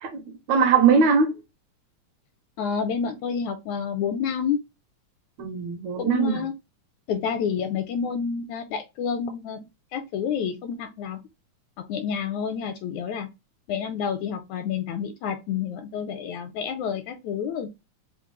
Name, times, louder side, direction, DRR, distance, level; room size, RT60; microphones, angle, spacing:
voice 1, 0.0-1.4 5.4-6.4, right 6 dB, 70° right, 2.1 m, -21 dB
voice 2, 2.6-4.6 6.0-6.5 7.1-9.7 9.9-11.2 11.9-13.3 13.7-17.7, left 7 dB, 80° left, 1.7 m, -29 dB
5.0 x 2.0 x 3.0 m
omnidirectional pair, 3.7 m